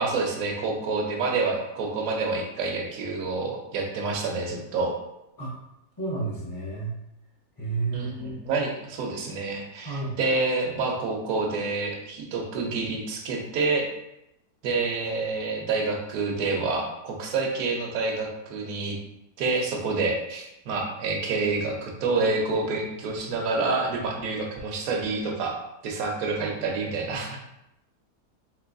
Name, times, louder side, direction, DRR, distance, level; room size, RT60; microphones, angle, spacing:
voice 1, 0.0-4.9 7.9-13.9 14.6-19.0 19.4-25.6 25.8-27.4, right 3 dB, 70° right, 1 dB, 1.1 m, -28 dB
voice 2, 6.0-7.0 7.6-8.4 9.8-10.2 26.4-26.7 27.1-27.4, right 3 dB, 30° left, -5 dB, 0.3 m, -32 dB
3.8 x 2.8 x 2.5 m, 0.85 s
omnidirectional pair, 1.7 m